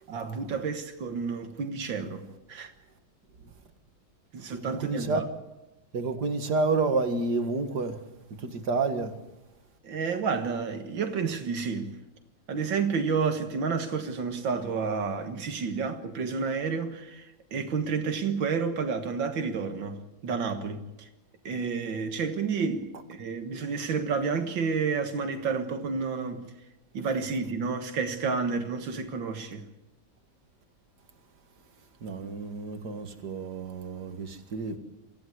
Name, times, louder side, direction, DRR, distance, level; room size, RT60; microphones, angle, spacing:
voice 1, 0.1-2.7 4.3-5.2 9.8-12.0 12.5-21.1 21.5-26.5 26.9-29.7, right 5 dB, 85° right, 2.2 m, -30 dB
voice 2, 4.7-5.2 5.9-8.0 8.4-9.1 32.0-34.8, right 3 dB, 60° right, 2.4 m, -29 dB
25.0 x 15.5 x 8.0 m
omnidirectional pair, 2.0 m